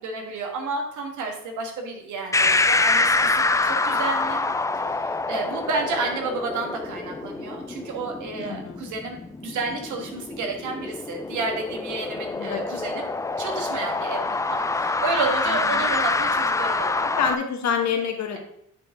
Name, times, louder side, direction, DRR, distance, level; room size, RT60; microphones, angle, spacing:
voice 1, 0.0-4.4 4.7-17.1, right 3 dB, 75° right, 3 dB, 1.6 m, -31 dB
sound 1, 2.3-17.3, left 3 dB, 10° left, 0.3 m, -26 dB
voice 2, 8.4-8.8 12.3-12.6 15.5-15.8 17.2-18.4, left 7 dB, 65° left, 4 dB, 1.3 m, -27 dB
9.1 x 4.4 x 3.7 m, 0.71 s
cardioid pair, 90°, 30 cm